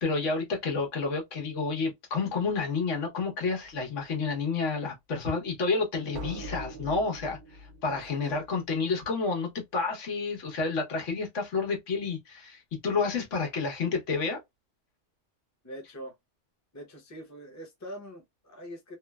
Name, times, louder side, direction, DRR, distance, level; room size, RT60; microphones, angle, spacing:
voice 1, 0.0-14.4, left 4 dB, 80° left, 1.3 m, -30 dB
sound 1, 3.5-3.8 6.1-8.8, equal, 50° right, 0.7 m, -42 dB
voice 2, 7.9-8.4 15.6-16.1 16.7-19.0, equal, 20° left, 0.7 m, -43 dB
3.0 x 2.0 x 2.2 m
omnidirectional pair, 1.2 m